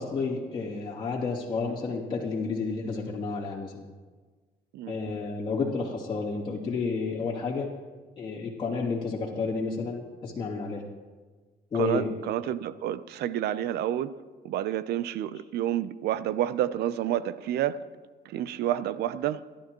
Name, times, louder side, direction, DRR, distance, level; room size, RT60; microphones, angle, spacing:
voice 1, 0.0-3.8 4.9-7.8 8.2-10.8 11.7-12.1, left 4 dB, 30° left, 2.9 m, -31 dB
voice 2, 11.7-14.1 14.4-17.8 18.3-19.4, right 11 dB, 75° right, 0.7 m, -29 dB
27.5 x 12.0 x 3.1 m
cardioid pair, 110°, 17 cm